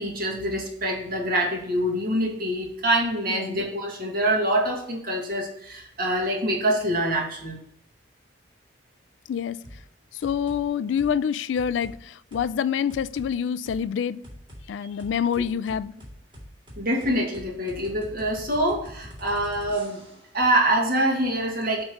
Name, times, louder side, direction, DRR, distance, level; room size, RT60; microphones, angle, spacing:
voice 1, 0.0-7.6 16.8-20.0 20.3-21.8, right 1 dB, 55° right, 1.8 m, -25 dB
voice 2, 9.3-9.6 10.1-14.2 14.7-15.9, left 7 dB, 85° left, 0.3 m, -26 dB
sound 1, 9.6-9.8 10.2-10.6 11.0-11.2 11.6-12.0 12.3-12.5 12.9-13.3 13.7-13.8 14.2-14.6 15.0-20.3, equal, 25° right, 2.2 m, -43 dB
8.6 x 3.1 x 5.2 m
head